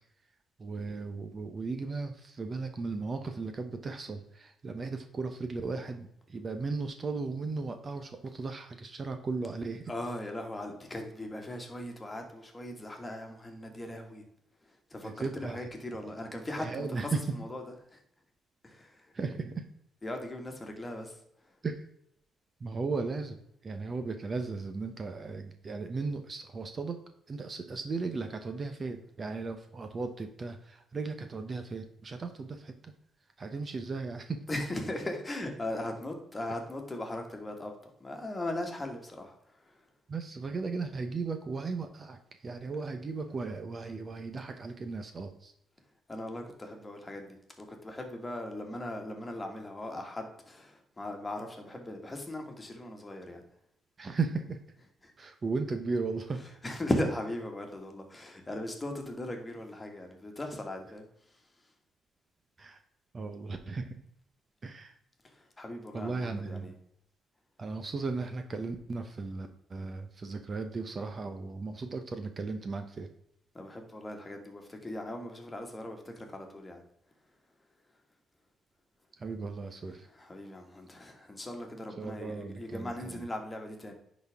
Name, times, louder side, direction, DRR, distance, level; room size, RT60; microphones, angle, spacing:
voice 1, 0.6-9.9 15.0-15.7 16.6-17.2 19.1-19.6 21.6-21.9 22.6-27.0 27.3-32.9 33.4-34.4 40.1-45.5 54.0-54.6 55.2-56.5 62.6-62.8 63.1-64.0 64.6-64.9 65.9-66.7 67.6-73.1 79.2-80.1 82.0-83.3, right 4 dB, 35° right, 7 dB, 0.8 m, -36 dB
voice 2, 9.9-14.2 14.7-18.0 18.6-19.1 20.0-21.2 34.5-39.8 46.1-53.4 54.8-55.1 56.3-61.1 65.2-66.8 73.5-76.8 79.8-83.9, left 1 dB, 20° left, 3 dB, 1.7 m, -39 dB
10.0 x 4.2 x 3.6 m, 0.74 s
cardioid pair, 90°, 0 cm